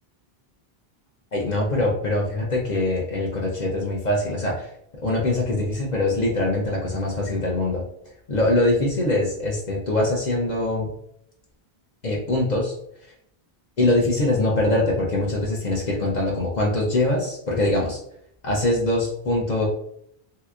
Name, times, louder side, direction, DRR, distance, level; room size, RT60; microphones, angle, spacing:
voice 1, 1.3-4.7 5.0-7.8 8.3-10.9 12.0-12.7 13.8-18.0 18.4-19.7, left 2 dB, 50° left, -3 dB, 0.7 m, -23 dB
3.2 x 2.8 x 2.4 m, 0.72 s
omnidirectional pair, 1.0 m